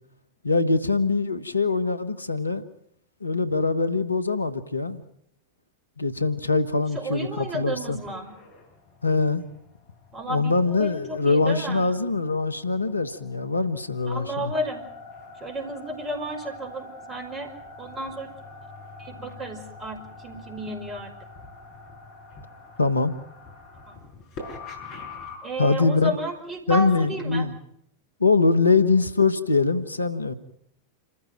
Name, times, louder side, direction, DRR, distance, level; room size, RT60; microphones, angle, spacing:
voice 1, 0.4-2.6 3.2-5.0 6.0-8.0 9.0-9.4 10.3-14.5 22.8-23.1 25.6-26.1 26.7-27.6 28.2-30.3, left 3 dB, 80° left, 12 dB, 1.3 m, -23 dB
voice 2, 6.9-8.4 10.1-11.9 14.1-14.8 15.4-18.3 19.0-21.1 23.9-24.0 25.4-27.5, right 1 dB, 20° right, 6 dB, 5.4 m, -32 dB
sound 1, 7.4-25.4, left 3 dB, 40° left, 6.8 m, -45 dB
28.0 x 14.5 x 9.3 m, 0.73 s
figure-of-eight pair, 90°, 0 cm